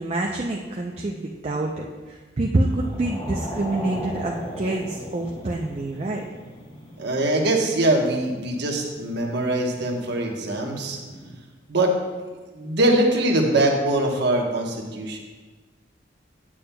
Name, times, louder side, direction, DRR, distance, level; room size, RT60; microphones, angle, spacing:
voice 1, 0.0-6.2, right 2 dB, 35° right, 0 dB, 0.5 m, -27 dB
sound 1, 2.6-11.4, equal, 30° left, 1.1 m, -39 dB
voice 2, 7.0-11.0 11.7-11.9 12.5-15.2, right 1 dB, 65° right, 1 dB, 1.1 m, -22 dB
8.5 x 8.4 x 2.2 m, 1.3 s
head